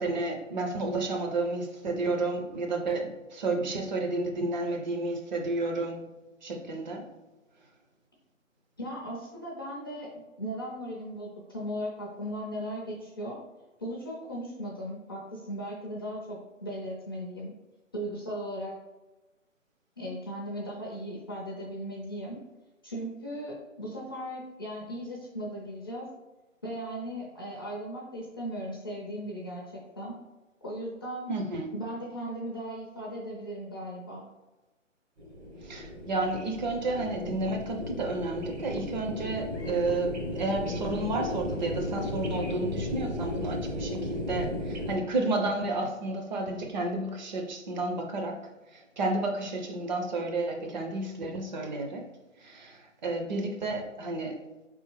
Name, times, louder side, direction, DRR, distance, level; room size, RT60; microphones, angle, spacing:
voice 1, 0.0-6.1 6.4-7.0 31.3-31.7 35.6-48.4 48.7-52.1 52.4-54.5, right 2 dB, 35° right, 2 dB, 0.6 m, -31 dB
voice 2, 8.8-10.1 10.4-13.4 13.8-17.5 17.9-18.7 20.0-22.4 22.8-26.1 26.6-30.1 30.6-31.3 31.7-34.3, equal, 20° left, -4 dB, 0.4 m, -37 dB
sound 1, 35.2-45.0, left 1 dB, 60° right, 1.3 m, -35 dB
4.4 x 3.4 x 3.1 m, 1.1 s
figure-of-eight pair, 140°, 39 cm